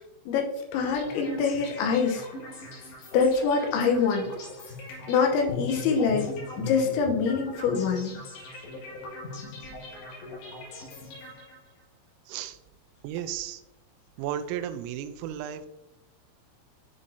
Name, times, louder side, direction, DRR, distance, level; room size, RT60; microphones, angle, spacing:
voice 1, 0.3-2.2 3.1-4.3 5.1-6.3 6.6-8.1, left 5 dB, 80° left, 3 dB, 2.9 m, -25 dB
sound 1, 0.7-11.8, left 2 dB, 60° left, 3.7 m, -40 dB
voice 2, 12.3-12.6 13.0-13.6 14.2-15.7, right 10 dB, 85° right, 10 dB, 2.9 m, -34 dB
9.9 x 3.7 x 2.7 m, 0.89 s
omnidirectional pair, 6.0 m